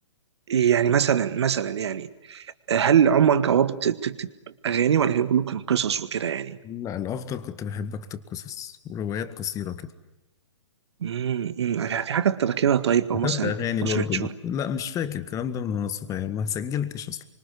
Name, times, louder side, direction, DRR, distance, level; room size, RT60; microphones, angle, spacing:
voice 1, 0.5-4.3 4.6-6.6 11.0-13.5 13.8-14.3, right 8 dB, 60° right, 13 dB, 1.7 m, -23 dB
voice 2, 6.6-9.9 13.1-17.2, left 8 dB, 20° left, 12 dB, 1.8 m, -30 dB
27.5 x 25.5 x 8.3 m, 0.93 s
figure-of-eight pair, 120°, 16 cm